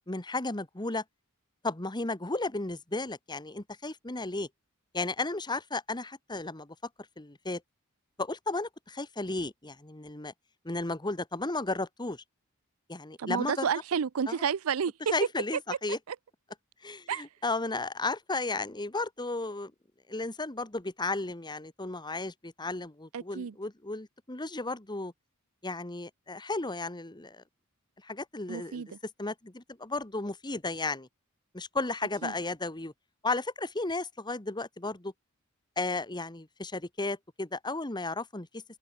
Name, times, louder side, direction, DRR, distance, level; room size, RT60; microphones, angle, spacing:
voice 1, 0.1-1.0 1.6-4.5 4.9-6.7 7.2-7.6 8.2-10.3 10.6-12.2 12.9-13.7 14.3-14.4 15.1-16.0 16.8-19.7 20.1-25.1 25.6-27.4 28.0-28.8 29.2-31.1 31.5-32.9 33.2-35.1 35.8-38.6, left 2 dB, 20° left, 1.6 m, -34 dB
voice 2, 13.2-14.9 16.1-16.2 17.1-17.2 23.1-23.5 28.5-28.9 32.2-32.3, right 7 dB, 75° right, 0.5 m, -30 dB
head